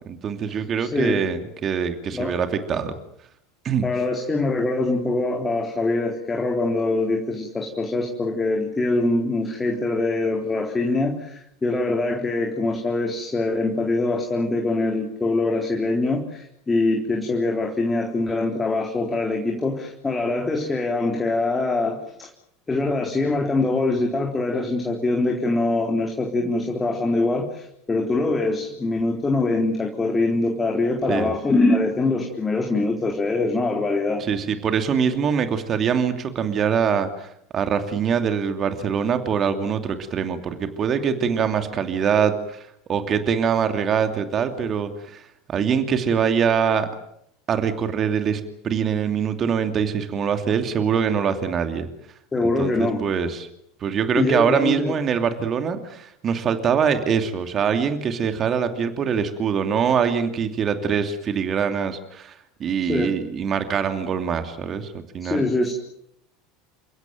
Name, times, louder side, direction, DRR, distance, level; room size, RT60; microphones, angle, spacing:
voice 1, 0.1-2.9 3.6-3.9 31.1-31.3 34.2-45.2 45.5-46.9 47.5-51.9 52.4-53.5 53.8-65.5, right 7 dB, 35° right, 8 dB, 2.7 m, -23 dB
voice 2, 0.8-1.2 2.1-2.3 3.8-22.3 22.7-34.2 52.3-53.0 54.2-55.0 62.9-63.1 65.2-65.7, left 2 dB, 20° left, 2 dB, 3.8 m, -23 dB
29.5 x 16.5 x 9.3 m, 0.75 s
figure-of-eight pair, 75°, 0 cm